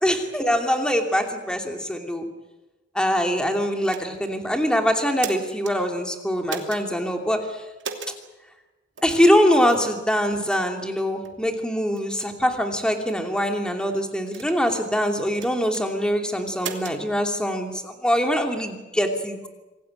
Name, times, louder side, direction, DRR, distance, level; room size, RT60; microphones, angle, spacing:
voice 1, 0.0-2.2 2.9-7.4 9.0-19.4, equal, 5° left, 3 dB, 2.9 m, -23 dB
sound 1, 3.8-4.3 5.0-5.7 6.5-6.8 7.8-8.2 9.0-9.1 9.7-9.9 10.4-10.6 11.2-11.4 11.9-12.3 13.1-13.5 14.3-14.9 15.3-15.8 16.6-17.0, right 5 dB, 75° right, 2.7 m, -36 dB
26.5 x 17.5 x 9.0 m, 1.1 s
head